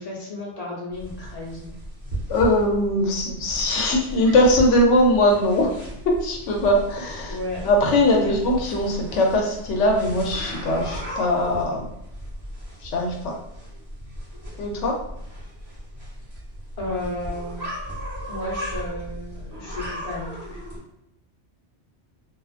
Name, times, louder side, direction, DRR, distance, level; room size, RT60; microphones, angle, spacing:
voice 1, 0.0-1.8 7.3-7.6 8.2-8.4 16.8-17.7 18.3-20.6, left 1 dB, 40° left, -5 dB, 0.8 m, -33 dB
sound 1, 0.9-20.8, equal, 20° right, 0.8 m, -36 dB
voice 2, 2.3-5.8 6.0-7.4 7.6-11.9 12.8-13.3 14.6-15.0, left 1 dB, 85° left, 0 dB, 0.9 m, -21 dB
2.4 x 2.3 x 2.4 m, 0.82 s
omnidirectional pair, 1.2 m